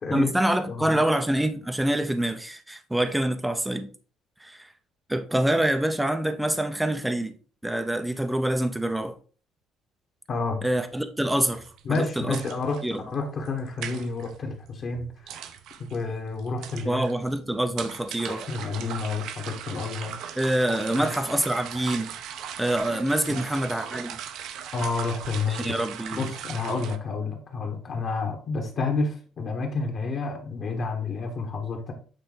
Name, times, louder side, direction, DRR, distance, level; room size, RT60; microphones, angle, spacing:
voice 1, 0.1-3.9 4.4-4.7 5.1-7.3 7.6-9.1 10.6-12.4 12.8-13.0 16.8-18.4 20.4-22.1 22.6-24.2 25.5-26.3, right 1 dB, 5° right, 0.5 m, -26 dB
voice 2, 0.7-1.1 10.3-10.6 11.8-15.5 15.8-17.1 18.3-20.4 21.0-21.2 23.3-23.6 24.7-25.8 26.1-31.9, left 4 dB, 35° left, 1.2 m, -30 dB
sound 1, 11.5-27.0, right 9 dB, 65° right, 0.7 m, -39 dB
7.9 x 4.0 x 3.9 m
cardioid pair, 175°, 0 cm